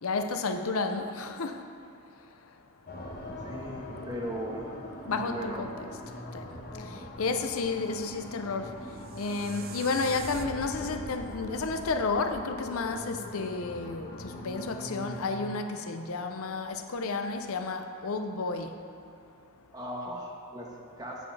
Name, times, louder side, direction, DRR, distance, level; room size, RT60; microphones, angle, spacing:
voice 1, 0.0-1.6 5.0-5.9 6.3-6.5 6.9-8.7 9.2-18.7, left 3 dB, 65° left, 0.6 m, -31 dB
sound 1, 2.9-15.4, left 1 dB, 45° left, 1.2 m, -42 dB
voice 2, 3.4-4.8 5.1-5.6 19.7-21.3, equal, 15° right, 1.3 m, -38 dB
sound 2, 8.7-13.8, right 5 dB, 40° right, 0.4 m, -46 dB
14.0 x 8.5 x 3.3 m
head